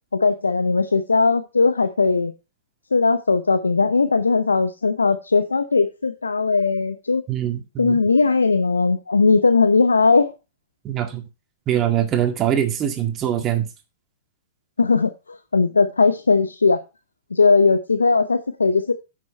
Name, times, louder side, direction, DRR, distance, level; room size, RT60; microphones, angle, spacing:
voice 1, 0.1-2.3 2.9-7.2 7.8-10.3 14.8-16.8 17.3-18.9, left 4 dB, 85° left, 0.6 m, -18 dB
voice 2, 7.3-8.0 10.8-11.2 11.7-13.7, right 10 dB, 30° right, 1.9 m, -23 dB
9.9 x 6.4 x 4.3 m
hypercardioid pair, 105°, 0 cm